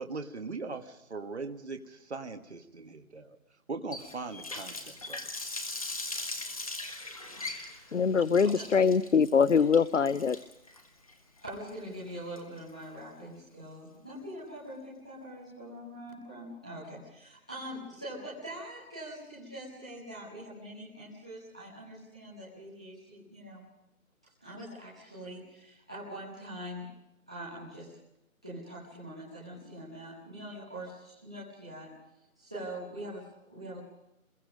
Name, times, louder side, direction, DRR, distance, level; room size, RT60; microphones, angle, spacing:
voice 1, 0.0-3.4 3.7-5.2, right 4 dB, 50° right, 5 dB, 1.7 m, -40 dB
Water tap faucet, 3.9-12.8, left 2 dB, 25° left, 1.4 m, -40 dB
voice 2, 7.9-10.4, left 6 dB, 60° left, 18 dB, 0.7 m, -23 dB
voice 3, 11.4-23.6 24.4-26.9 27.3-27.9 28.4-31.9 32.4-33.2 33.5-33.8, right 1 dB, 5° right, -10 dB, 1.2 m, -43 dB
25.5 x 21.5 x 5.3 m, 0.89 s
figure-of-eight pair, 175°, 42 cm